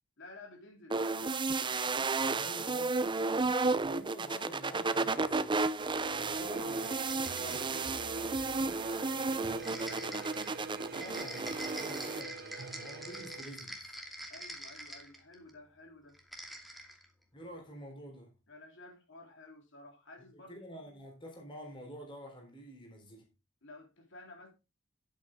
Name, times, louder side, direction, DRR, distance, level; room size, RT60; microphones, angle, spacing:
voice 1, 0.2-1.5 8.9-10.4 14.3-16.2 18.5-21.0 23.6-24.5, left 2 dB, 65° left, 3.8 m, -53 dB
sound 1, 0.9-12.2, right 3 dB, 25° right, 0.6 m, -33 dB
voice 2, 2.2-3.0 3.7-5.6 6.1-8.3 10.9-13.9 17.3-18.3 20.3-23.3, equal, 25° left, 3.7 m, -49 dB
sound 2, 5.8-13.4, right 4 dB, 55° right, 1.1 m, -45 dB
glass ice shaking, 6.8-7.8 9.6-15.5 16.1-17.0, right 1 dB, ahead, 2.4 m, -45 dB
11.0 x 8.5 x 3.7 m
head